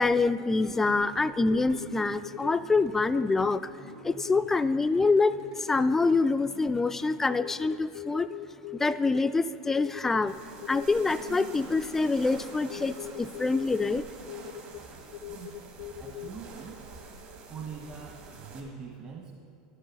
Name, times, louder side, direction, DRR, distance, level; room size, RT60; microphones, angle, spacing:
voice 1, 0.0-3.7 4.0-8.3 8.8-10.4 10.7-14.0, left 3 dB, 10° left, 13 dB, 0.3 m, -26 dB
sound 1, 0.9-7.4, right 3 dB, 80° right, 2.6 m, -49 dB
sound 2, 1.4-2.7 2.9-3.6 3.9-4.6 5.2-6.2 7.3-9.3 9.7-10.2 10.6-11.7 12.7-14.0 14.3-14.8 15.1-16.3, left 14 dB, 80° left, 0.4 m, -40 dB
sound 3, 10.3-18.6, right 4 dB, 55° right, 2.1 m, -46 dB
voice 2, 16.0-16.8 17.5-19.4, right 5 dB, 40° right, -1 dB, 1.2 m, -42 dB
11.5 x 6.6 x 6.3 m, 2.4 s
supercardioid pair, 105°, 3 cm